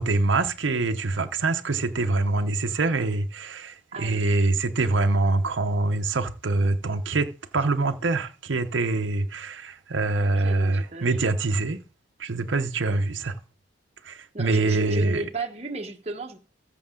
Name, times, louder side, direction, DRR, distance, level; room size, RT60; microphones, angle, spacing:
voice 1, 0.0-11.8 12.2-13.3 14.0-15.2, right 3 dB, 85° right, 0.8 m, -25 dB
voice 2, 3.9-4.2 10.2-11.2 14.3-16.4, right 3 dB, 35° right, 1.1 m, -34 dB
14.5 x 6.7 x 3.8 m
head